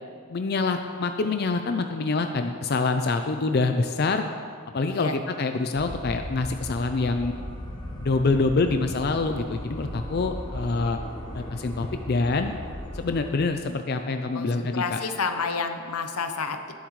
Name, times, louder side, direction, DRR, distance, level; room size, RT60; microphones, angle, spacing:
voice 1, 0.3-4.2 4.7-7.3 8.0-11.0 11.3-12.5 12.9-15.0, left 3 dB, 45° left, 7 dB, 0.4 m, -26 dB
sound 1, 5.7-13.3, equal, 20° left, 1.1 m, -37 dB
voice 2, 14.3-16.7, left 5 dB, 90° left, 7 dB, 0.8 m, -30 dB
18.5 x 7.4 x 3.2 m, 2.1 s
head